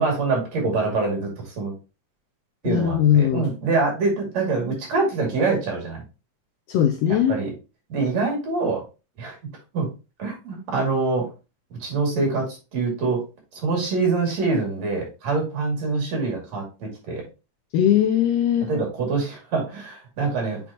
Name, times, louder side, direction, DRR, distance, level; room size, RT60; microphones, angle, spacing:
voice 1, 0.0-1.7 2.6-6.0 7.3-7.5 7.9-8.8 9.2-9.4 9.7-9.9 10.2-11.3 11.8-13.2 13.5-17.3 18.7-20.6, right 3 dB, 65° right, 3.7 m, -25 dB
voice 2, 2.6-3.5 6.7-7.4 17.7-18.7, left 10 dB, 80° left, 1.5 m, -19 dB
8.2 x 4.1 x 2.9 m
omnidirectional pair, 3.3 m